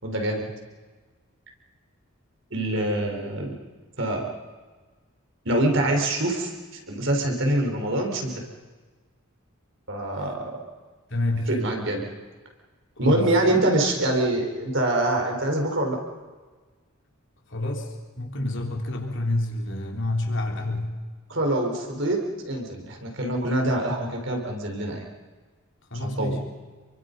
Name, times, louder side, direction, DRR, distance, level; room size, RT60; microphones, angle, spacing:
voice 1, 0.0-0.5 2.5-3.5 4.0-4.3 5.4-8.4 9.9-10.6 11.5-12.1 13.0-16.0 21.3-25.0 25.9-26.4, right 1 dB, 60° right, 2 dB, 4.6 m, -25 dB
voice 2, 11.1-11.6 13.0-13.4 17.5-21.0 25.9-26.5, left 2 dB, 55° left, 1 dB, 3.8 m, -28 dB
29.5 x 23.5 x 5.5 m, 1.4 s
head